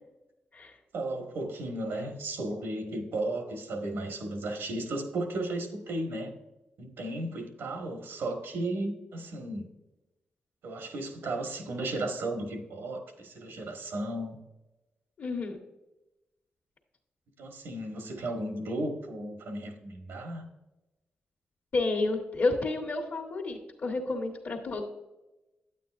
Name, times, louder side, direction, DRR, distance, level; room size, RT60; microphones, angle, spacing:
voice 1, 0.9-6.3 6.8-9.7 10.6-14.4 17.4-20.5, right 2 dB, 85° right, 4 dB, 1.4 m, -34 dB
voice 2, 15.2-15.6 21.7-24.8, left 3 dB, 60° left, -2 dB, 1.3 m, -30 dB
9.2 x 8.4 x 2.5 m, 0.99 s
cardioid pair, 65°, 4 cm